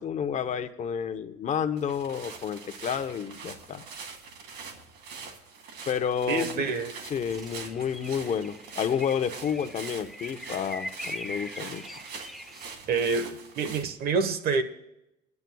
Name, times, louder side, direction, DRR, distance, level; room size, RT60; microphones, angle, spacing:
voice 1, 0.0-3.8 5.9-6.7 7.0-11.8, left 7 dB, 45° left, 0.9 m, -30 dB
sound 1, 1.8-13.9, right 5 dB, 85° right, 2.2 m, -44 dB
voice 2, 6.3-6.9 12.9-14.6, right 4 dB, 65° right, 1.2 m, -27 dB
sound 2, 7.3-12.7, equal, ahead, 0.7 m, -42 dB
24.0 x 10.5 x 2.3 m
cardioid pair, 110°, 17 cm